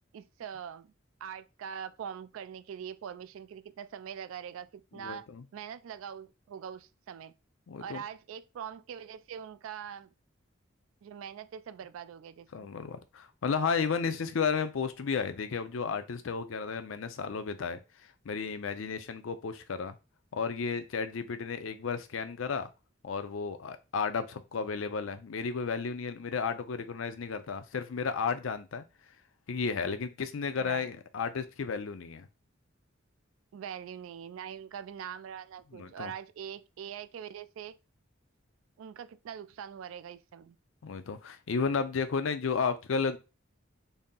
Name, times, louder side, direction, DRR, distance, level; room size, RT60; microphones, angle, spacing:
voice 1, 0.1-0.9 1.2-5.3 5.5-7.3 7.8-10.1 11.0-12.7 30.6-30.9 33.5-37.8 38.8-40.6, right 8 dB, 75° right, 0.3 m, -43 dB
voice 2, 4.9-5.4 7.7-8.0 12.5-17.8 18.3-20.0 20.3-22.7 23.0-28.8 29.5-32.3 35.7-36.1 40.8-43.2, left 5 dB, 70° left, 0.5 m, -33 dB
4.1 x 2.0 x 3.6 m
head